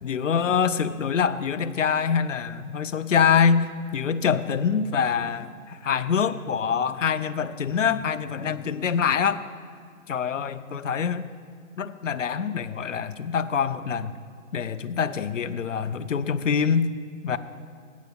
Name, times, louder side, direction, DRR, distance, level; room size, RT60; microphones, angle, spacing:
voice 1, 0.0-9.4 10.1-11.3 11.8-14.2 14.5-16.9 17.2-17.4, left 6 dB, 60° left, 11 dB, 0.6 m, -25 dB
8.2 x 7.8 x 6.8 m, 2.1 s
figure-of-eight pair, 155°, 42 cm